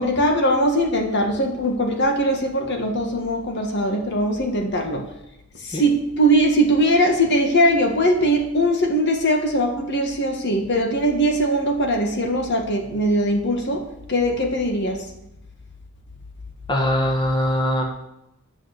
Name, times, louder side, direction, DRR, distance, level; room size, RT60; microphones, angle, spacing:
voice 1, 0.0-5.1 5.6-13.8 14.1-15.0, equal, 55° left, 4 dB, 1.7 m, -21 dB
voice 2, 16.7-17.8, left 1 dB, 20° left, 1 dB, 1.6 m, -21 dB
9.8 x 6.3 x 8.2 m, 0.85 s
head